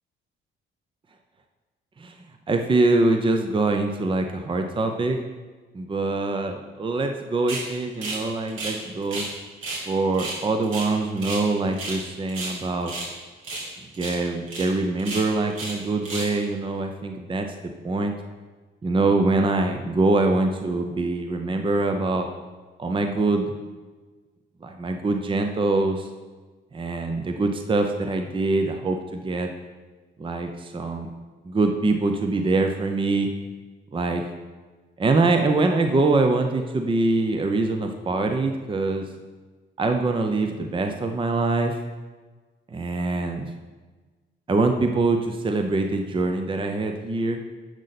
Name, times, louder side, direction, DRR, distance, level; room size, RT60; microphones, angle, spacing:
voice 1, 2.5-5.2 5.7-9.2 9.9-12.9 14.0-17.5 17.8-18.1 18.8-22.3 22.8-23.5 24.6-26.1 26.7-29.5 30.2-31.1 31.4-33.3 33.9-34.2 35.0-39.1 39.8-41.8 42.7-43.5 44.5-47.4, right 3 dB, 25° right, 5 dB, 0.7 m, -24 dB
sound 1, 7.5-7.7 8.0-8.2 8.5-9.3 9.6-9.8 10.1-11.5 11.7-12.0 12.3-13.1 13.4-13.7 13.9-14.2 14.5-14.7 15.0-15.8 16.0-16.4, right 2 dB, 85° right, 3.0 m, -32 dB
10.5 x 6.5 x 4.2 m, 1.4 s
cardioid pair, 90°, 20 cm